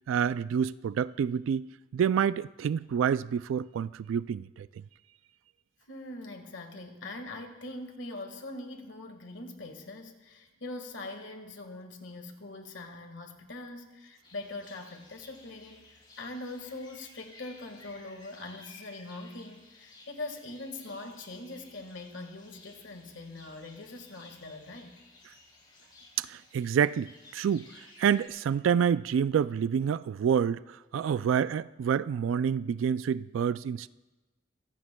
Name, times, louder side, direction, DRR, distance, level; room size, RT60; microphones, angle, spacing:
voice 1, 0.1-4.7 26.2-27.7 28.0-33.9, right 7 dB, 80° right, 0.3 m, -28 dB
voice 2, 5.9-25.0, left 2 dB, 70° left, 1.7 m, -42 dB
sound 1, 14.2-28.3, left 2 dB, 25° left, 3.2 m, -56 dB
24.0 x 15.5 x 2.2 m
head